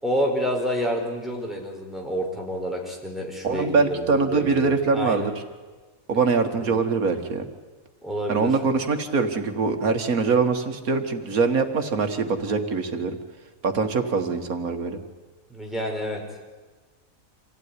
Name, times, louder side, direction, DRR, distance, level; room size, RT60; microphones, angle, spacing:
voice 1, 0.0-5.3 6.6-6.8 8.0-8.5 15.5-16.2, equal, ahead, -1 dB, 4.6 m, -28 dB
voice 2, 3.4-5.3 6.1-7.5 8.3-13.2 13.6-15.0, right 4 dB, 85° right, 6 dB, 2.1 m, -23 dB
26.0 x 15.5 x 9.8 m, 1.3 s
omnidirectional pair, 1.5 m